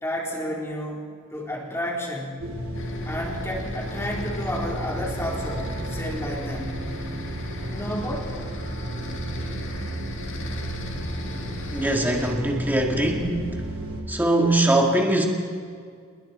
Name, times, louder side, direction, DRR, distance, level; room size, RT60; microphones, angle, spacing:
voice 1, 0.0-2.6 3.1-6.9 7.7-8.3, equal, 10° left, -3 dB, 3.8 m, -31 dB
sound 1, 2.4-14.0, right 1 dB, 65° right, 3.3 m, -32 dB
sound 2, 2.7-12.3, left 3 dB, 60° left, 2.3 m, -40 dB
voice 2, 11.7-13.6 14.1-15.3, right 1 dB, 10° right, 0 dB, 2.1 m, -22 dB
28.0 x 21.5 x 4.4 m, 2.1 s
head